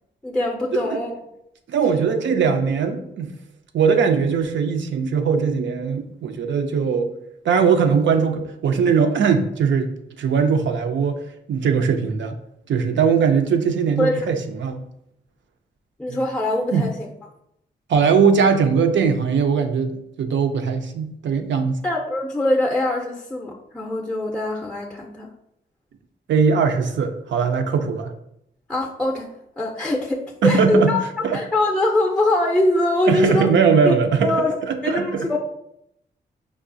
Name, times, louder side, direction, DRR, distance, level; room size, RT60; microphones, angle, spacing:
voice 1, 0.2-1.1 14.0-14.3 16.0-17.1 21.8-25.3 28.7-29.3 29.6-31.0 31.3-33.5 33.8-34.0 34.2-34.6 34.8-35.4, left 1 dB, 5° left, 1 dB, 0.5 m, -22 dB
voice 2, 1.7-3.3 3.7-7.1 7.4-11.2 11.5-12.4 12.7-14.8 16.1-16.2 16.7-16.9 17.9-21.8 26.3-28.1 30.4-31.0 31.2-31.4 33.1-34.3 34.6-35.4, right 6 dB, 75° right, 5 dB, 0.4 m, -20 dB
4.6 x 2.0 x 2.5 m, 0.78 s
cardioid pair, 55°, 19 cm